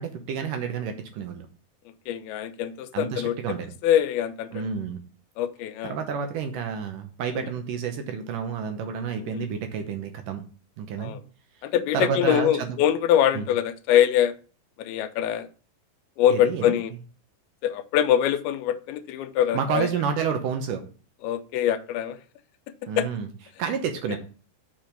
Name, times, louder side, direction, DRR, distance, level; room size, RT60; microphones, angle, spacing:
voice 1, 0.0-1.5 2.9-3.7 4.5-5.0 5.8-10.4 10.8-11.1 11.9-12.8 13.3-13.5 16.3-16.8 19.5-20.9 22.9-23.3 23.6-24.2, right 6 dB, 70° right, 6 dB, 2.2 m, -29 dB
voice 2, 2.1-3.3 3.8-4.6 5.4-6.0 11.0-11.2 11.6-14.3 14.8-15.5 16.2-16.9 17.6-19.9 21.2-22.2 23.0-23.1, left 10 dB, 85° left, 10 dB, 2.5 m, -23 dB
6.4 x 6.0 x 5.1 m, 0.38 s
omnidirectional pair, 4.4 m